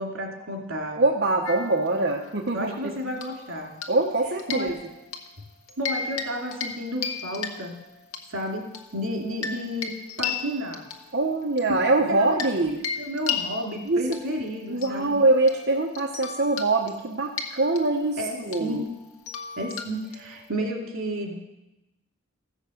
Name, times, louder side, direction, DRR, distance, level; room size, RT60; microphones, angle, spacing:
voice 1, 0.0-1.0 2.5-3.7 4.5-4.8 5.8-7.8 8.3-10.9 12.1-12.5 13.0-15.1 18.2-18.9 19.6-21.4, equal, 75° right, 1 dB, 2.6 m, -32 dB
voice 2, 1.0-2.7 3.9-4.7 11.1-12.8 13.9-14.2 14.7-18.8, right 2 dB, 50° right, -1 dB, 1.1 m, -23 dB
sound 1, 1.4-2.5 3.2-4.1 4.4-5.3 5.7-6.3 6.5-6.8 7.0-8.2 8.7-12.6 12.8-20.5, left 6 dB, 85° left, 1.4 m, -35 dB
15.0 x 6.4 x 7.8 m, 0.95 s
head